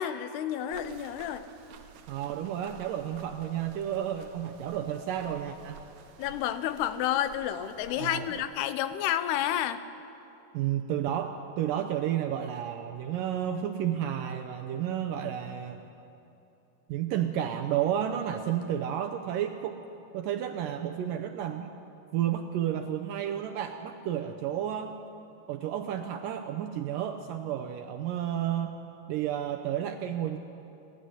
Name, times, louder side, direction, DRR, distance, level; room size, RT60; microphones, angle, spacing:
voice 1, 0.0-1.5 6.2-9.8, left 11 dB, 85° left, 12 dB, 2.9 m, -30 dB
sound 1, 0.7-8.5, right 6 dB, 65° right, 2.2 m, -51 dB
voice 2, 2.1-5.8 8.0-8.3 10.5-15.9 16.9-19.8 20.1-21.7 22.1-24.9 25.5-28.8 29.1-30.4, right 10 dB, 80° right, 7 dB, 2.0 m, -31 dB
26.5 x 11.5 x 9.6 m, 2.9 s
omnidirectional pair, 4.6 m